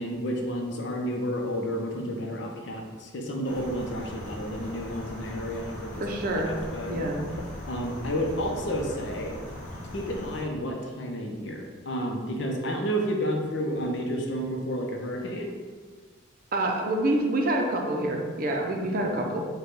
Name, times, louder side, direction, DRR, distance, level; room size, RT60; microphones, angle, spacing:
voice 1, 0.0-6.0 6.4-7.1 7.7-9.3 9.9-15.5, equal, 60° left, 1 dB, 0.6 m, -31 dB
sound 1, 3.4-10.4, left 1 dB, 40° left, 1.0 m, -40 dB
voice 2, 6.0-6.6 6.9-7.2 16.5-19.5, right 1 dB, 45° right, 1 dB, 0.6 m, -27 dB
4.9 x 2.3 x 4.5 m, 1.5 s
head